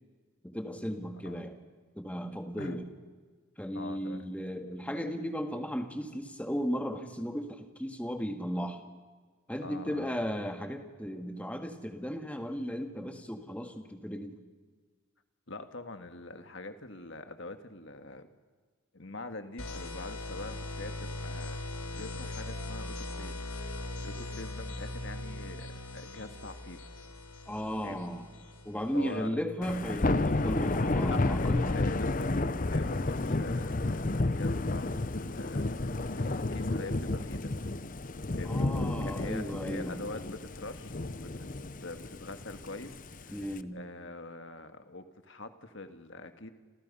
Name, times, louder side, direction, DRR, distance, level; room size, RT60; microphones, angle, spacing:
voice 1, 0.4-1.6 1.9-2.9 3.6-8.8 9.5-14.4 27.5-28.3 28.6-31.8 38.4-40.0 43.3-43.8, equal, 5° left, 5 dB, 1.8 m, -35 dB
voice 2, 3.7-4.3 9.6-10.1 15.5-18.3 18.9-23.5 24.0-26.8 27.8-28.1 28.9-29.4 31.0-37.5 38.4-38.7 39.0-41.5 41.8-43.4 43.7-46.5, left 2 dB, 55° left, 8 dB, 1.9 m, -44 dB
sound 1, 19.6-29.3, left 2 dB, 85° left, 4.0 m, -40 dB
Thunder / Rain, 29.6-43.6, left 2 dB, 40° left, 0.8 m, -31 dB
29.5 x 28.0 x 5.6 m, 1.5 s
head